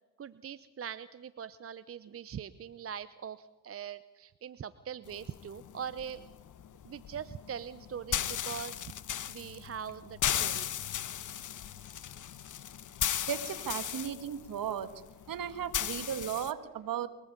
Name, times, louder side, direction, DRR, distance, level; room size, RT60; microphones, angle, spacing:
voice 1, 0.2-6.3 6.8-8.9 9.3-10.8, right 8 dB, 35° right, 15 dB, 0.8 m, -42 dB
sound 1, 5.1-16.5, left 10 dB, 45° left, 1.4 m, -36 dB
voice 2, 13.3-14.9 15.3-17.1, right 9 dB, 55° right, 11 dB, 2.0 m, -35 dB
24.0 x 22.0 x 5.4 m, 1.2 s
hypercardioid pair, 65°, 41 cm